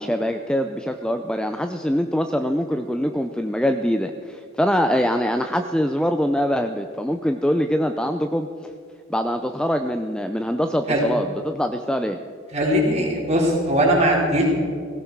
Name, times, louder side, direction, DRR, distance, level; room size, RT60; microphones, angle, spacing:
voice 1, 0.0-8.5 9.1-12.2, equal, 5° left, 6 dB, 0.5 m, -23 dB
voice 2, 12.5-14.5, equal, 30° right, -2 dB, 3.8 m, -20 dB
17.0 x 17.0 x 4.7 m, 2.3 s
head